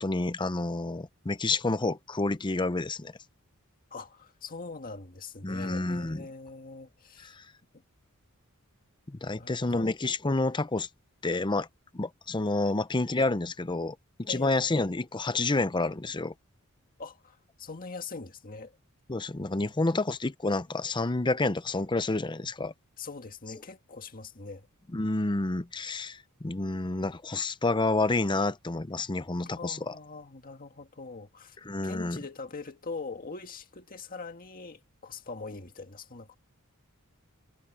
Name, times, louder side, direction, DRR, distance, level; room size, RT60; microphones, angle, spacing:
voice 1, 0.0-3.1 5.4-6.3 7.2-7.4 9.1-10.9 11.2-11.7 11.9-16.3 19.1-22.7 24.9-29.9 31.7-32.2, left 2 dB, 20° left, 0.7 m, -29 dB
voice 2, 3.9-7.4 9.3-9.9 12.6-12.8 14.3-14.7 17.0-18.8 19.3-19.9 23.0-24.7 29.4-31.6 31.8-36.4, left 4 dB, 40° left, 1.8 m, -42 dB
head